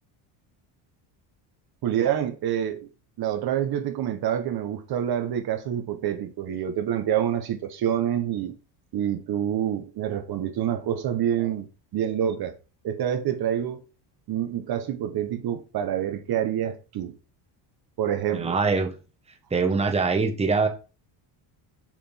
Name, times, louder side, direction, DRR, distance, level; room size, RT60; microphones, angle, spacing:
voice 1, 1.8-2.9 3.2-8.5 8.9-11.7 11.9-12.5 12.8-13.8 14.3-17.2 18.0-18.6, right 10 dB, 50° right, 1.2 m, -27 dB
voice 2, 18.3-18.9 19.5-20.7, right 4 dB, 10° right, 1.3 m, -23 dB
7.3 x 5.1 x 5.6 m
cardioid pair, 145°, 50 cm